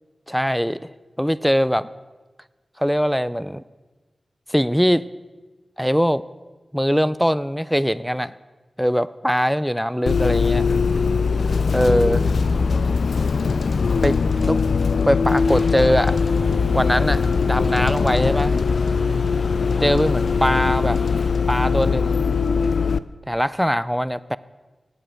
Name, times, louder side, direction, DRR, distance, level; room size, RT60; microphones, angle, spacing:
voice 1, 0.3-0.9 1.2-1.9 2.8-3.6 4.5-5.1 5.8-6.2 6.7-8.3 8.8-10.7 11.7-12.3 14.0-14.2 14.5-14.6 15.1-16.2 16.7-18.6 19.8-21.0 21.5-22.2 23.3-24.4, equal, ahead, 17 dB, 0.3 m, -21 dB
Bus, 10.1-23.0, left 5 dB, 85° left, 0.3 m, -21 dB
sound 1, 15.3-21.3, left 1 dB, 65° left, 3.1 m, -34 dB
9.2 x 8.6 x 6.4 m, 1.3 s
wide cardioid pair, 95°, 0 cm